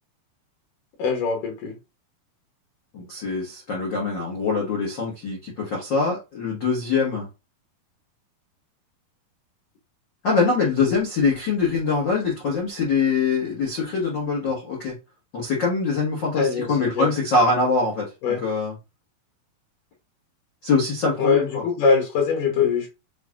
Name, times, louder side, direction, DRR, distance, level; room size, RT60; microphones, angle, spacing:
voice 1, 1.0-1.8 16.4-17.1 18.2-18.4 21.2-22.9, left 5 dB, 70° left, 2.3 m, -22 dB
voice 2, 2.9-7.3 10.2-15.0 15.3-18.1 18.4-18.7 20.6-21.6, left 4 dB, 90° left, 1.0 m, -23 dB
6.6 x 2.9 x 2.4 m
omnidirectional pair, 4.3 m